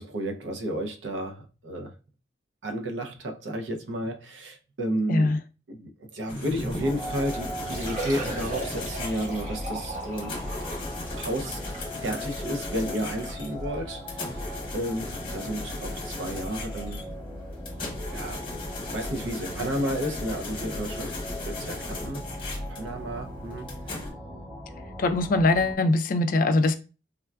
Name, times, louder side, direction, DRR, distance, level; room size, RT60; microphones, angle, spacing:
voice 1, 0.0-1.9 2.6-5.4 5.7-10.4 10.9-11.6 12.0-14.5 14.7-17.0 18.1-21.2 21.4-22.3 22.7-24.0, right 1 dB, 75° right, 0.5 m, -32 dB
voice 2, 5.1-5.4 25.0-26.7, left 2 dB, 45° left, 0.3 m, -22 dB
sound 1, 6.3-24.1, left 2 dB, 30° left, 0.8 m, -37 dB
sound 2, 6.8-25.8, left 1 dB, 20° right, 0.6 m, -40 dB
Liquid, 7.0-7.1 7.5-13.4 14.1-14.2 14.6-14.7 16.4-16.5 16.6-16.7, right 1 dB, 40° right, 0.9 m, -39 dB
3.6 x 2.2 x 2.3 m
head